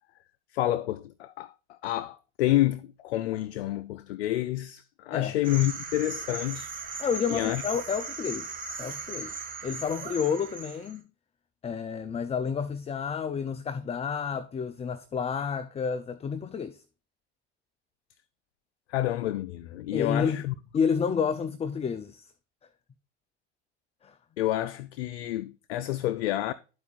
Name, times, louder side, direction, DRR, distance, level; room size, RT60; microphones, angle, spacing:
voice 1, 0.5-6.8 7.3-7.6 18.9-20.5 24.4-26.5, left 15 dB, 85° left, 0.5 m, -29 dB
sound 1, 5.4-11.0, right 4 dB, 25° right, 1.7 m, -38 dB
voice 2, 7.0-9.4 9.6-11.0 11.6-16.8 19.9-20.4 20.7-22.3 24.0-24.2, left 6 dB, 20° left, 0.4 m, -30 dB
13.0 x 4.6 x 2.4 m
hypercardioid pair, 85°, 33 cm